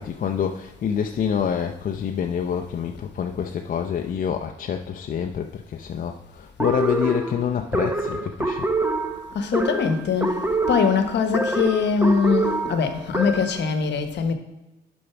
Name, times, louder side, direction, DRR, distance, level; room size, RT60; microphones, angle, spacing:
voice 1, 0.0-8.7, left 8 dB, 45° left, 4 dB, 0.5 m, -27 dB
sound 1, 6.6-13.6, right 2 dB, 10° right, 0.8 m, -26 dB
voice 2, 9.3-10.4 10.7-14.3, left 5 dB, 60° left, 7 dB, 1.0 m, -22 dB
6.6 x 5.3 x 5.8 m, 1.0 s
cardioid pair, 90°, 20 cm